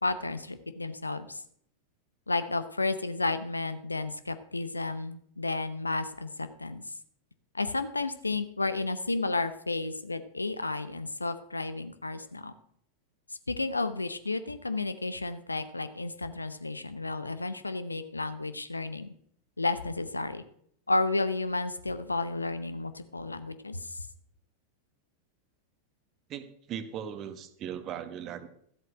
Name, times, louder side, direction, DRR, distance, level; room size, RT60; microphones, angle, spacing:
voice 1, 0.0-1.4 2.3-6.8 7.5-12.5 13.5-19.1 19.6-20.4 20.9-23.9, left 3 dB, 80° left, 12 dB, 0.9 m, -32 dB
voice 2, 26.3-28.5, right 9 dB, 35° right, 12 dB, 1.2 m, -38 dB
13.5 x 7.9 x 6.2 m, 0.67 s
figure-of-eight pair, 90°, 0 cm